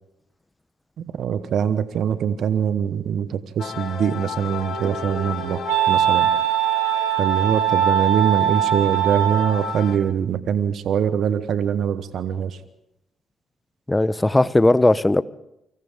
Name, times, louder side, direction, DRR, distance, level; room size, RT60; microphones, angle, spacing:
voice 1, 1.0-6.3 7.2-12.6, right 8 dB, 65° right, 1.1 m, -23 dB
sound 1, 3.6-10.0, left 8 dB, 60° left, 2.1 m, -33 dB
Wind instrument woodwind instrument, 4.3-9.8, right 11 dB, 80° right, 2.6 m, -22 dB
voice 2, 13.9-15.2, left 2 dB, 15° left, 0.9 m, -17 dB
29.5 x 24.5 x 3.7 m
hypercardioid pair, 45°, 0 cm